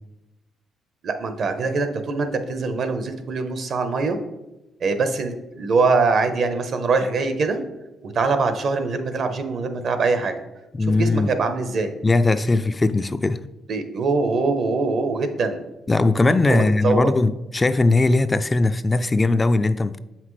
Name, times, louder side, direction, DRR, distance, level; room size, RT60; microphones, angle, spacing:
voice 1, 1.0-4.2 4.8-7.6 8.0-10.4 10.9-11.9 13.7-15.6 16.5-17.1, right 4 dB, 60° right, 8 dB, 0.8 m, -23 dB
voice 2, 10.8-11.3 12.0-13.4 15.9-20.0, left 2 dB, 25° left, 11 dB, 0.3 m, -19 dB
7.3 x 5.8 x 3.2 m, 0.98 s
cardioid pair, 90°, 0 cm